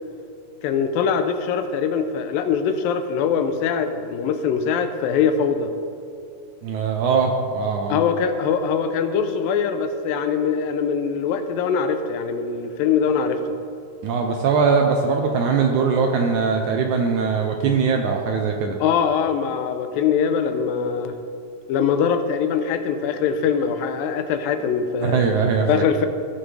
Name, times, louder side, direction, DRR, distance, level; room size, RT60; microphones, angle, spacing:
voice 1, 0.6-5.7 7.9-13.4 18.8-21.1 21.7-25.3 25.7-26.1, left 6 dB, 85° left, 8 dB, 2.4 m, -22 dB
voice 2, 6.6-8.0 14.0-18.8 25.0-25.8, right 5 dB, 75° right, 3 dB, 1.8 m, -21 dB
16.0 x 7.5 x 3.3 m, 2.5 s
omnidirectional pair, 4.0 m